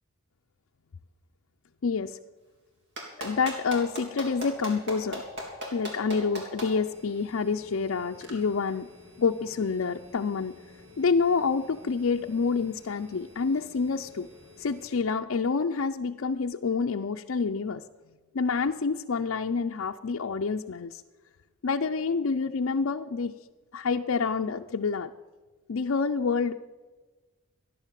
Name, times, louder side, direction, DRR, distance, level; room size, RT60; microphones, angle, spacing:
voice 1, 1.8-2.2 3.2-5.2 5.7-8.9 9.2-10.6 11.0-14.3 14.6-17.8 18.3-21.0 21.6-23.3 23.7-25.1 25.7-26.5, left 5 dB, 70° left, 4 dB, 0.5 m, -28 dB
Clapping, 3.0-6.7 8.2-8.3, equal, 55° right, 3.8 m, -36 dB
sound 1, 6.8-15.0, left 2 dB, 75° right, 3.5 m, -53 dB
15.5 x 10.5 x 7.4 m, 1.3 s
head